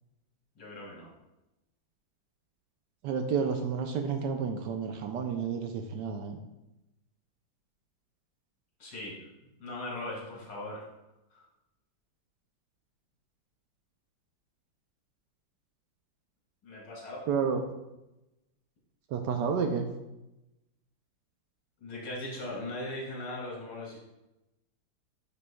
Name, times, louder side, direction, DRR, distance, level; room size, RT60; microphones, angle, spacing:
voice 1, 0.6-1.1 8.8-9.2 9.6-10.9 11.3-11.4 16.6-17.3 21.8-24.0, left 1 dB, 70° left, -4 dB, 2.8 m, -39 dB
voice 2, 3.0-6.4 17.3-17.6 19.1-19.9, right 6 dB, 75° right, 5 dB, 1.1 m, -30 dB
9.5 x 5.2 x 2.3 m, 0.95 s
omnidirectional pair, 2.1 m